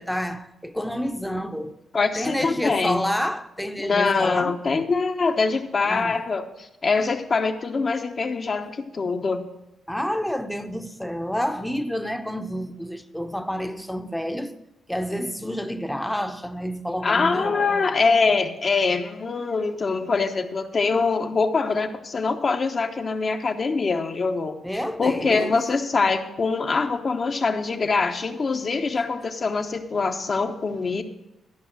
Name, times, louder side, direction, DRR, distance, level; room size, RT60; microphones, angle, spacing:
voice 1, 0.0-1.7 2.1-4.5 5.9-6.2 9.9-14.5 14.9-17.9 24.6-25.6, equal, 5° left, 0.9 m, -29 dB
voice 2, 1.9-3.0 3.8-9.5 17.0-24.6 25.0-31.0, left 4 dB, 45° left, 1.0 m, -24 dB
12.5 x 5.5 x 7.4 m
cardioid pair, 70°, 0 cm